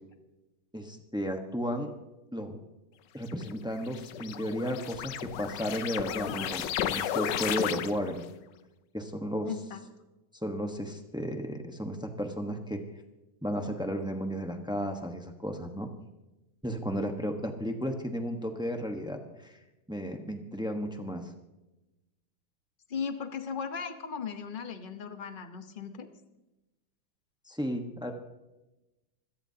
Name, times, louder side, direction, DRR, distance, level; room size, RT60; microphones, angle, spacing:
voice 1, 0.7-1.9 2.3-2.6 3.1-8.2 8.9-9.5 10.4-12.8 13.4-15.9 16.6-19.6 19.9-21.3 27.5-28.1, equal, 5° right, 4 dB, 0.8 m, -34 dB
sound 1, 3.3-8.2, left 10 dB, 70° left, 1.3 m, -34 dB
voice 2, 9.4-9.8 22.9-26.1, left 6 dB, 35° left, 8 dB, 0.9 m, -37 dB
24.5 x 17.0 x 2.8 m, 1.0 s
omnidirectional pair, 2.1 m